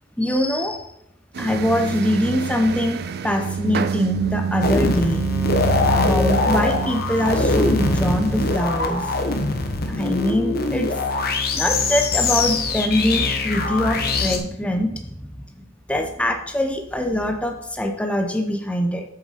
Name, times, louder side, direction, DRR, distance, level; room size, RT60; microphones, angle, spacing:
voice 1, 0.2-0.8 1.4-5.2 5.9-9.0 9.9-10.9 11.5-15.2 15.6-19.0, left 1 dB, 5° left, 4 dB, 0.9 m, -23 dB
sound 1, 1.3-8.6, right 6 dB, 55° right, 0.5 m, -27 dB
sound 2, 4.6-14.4, left 3 dB, 55° left, 1.1 m, -22 dB
7.9 x 7.3 x 4.2 m, 0.76 s
head